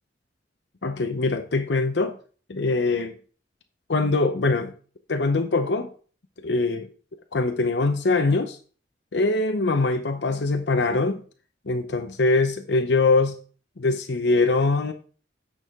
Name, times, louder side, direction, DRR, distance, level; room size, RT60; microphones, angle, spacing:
voice 1, 0.8-2.2 2.5-3.1 3.9-4.7 5.1-5.9 6.4-6.9 7.3-8.6 9.1-11.2 11.7-13.4 13.8-14.9, left 3 dB, 80° left, 0.7 m, -23 dB
9.3 x 6.2 x 3.6 m
head